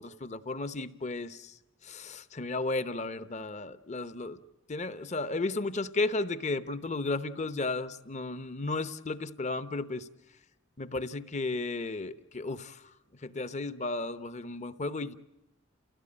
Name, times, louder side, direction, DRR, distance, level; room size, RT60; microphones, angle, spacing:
voice 1, 0.0-4.4 4.7-10.1 10.8-12.9 13.2-15.1, left 3 dB, 35° left, 13 dB, 0.9 m, -34 dB
29.5 x 16.5 x 8.8 m, 0.91 s
head